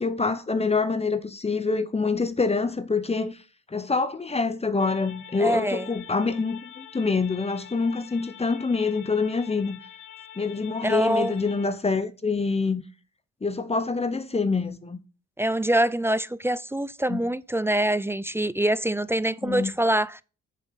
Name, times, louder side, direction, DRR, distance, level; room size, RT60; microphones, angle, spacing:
voice 1, 0.0-3.4 3.7-9.8 10.4-12.8 13.4-15.0 17.1-17.3 19.4-19.7, left 4 dB, 20° left, 0.9 m, -26 dB
sound 1, 4.8-11.7, left 10 dB, 80° left, 2.5 m, -46 dB
voice 2, 5.4-5.9 10.8-11.3 15.4-20.2, right 1 dB, 10° right, 0.4 m, -24 dB
7.5 x 7.1 x 7.1 m
cardioid pair, 90°, 30 cm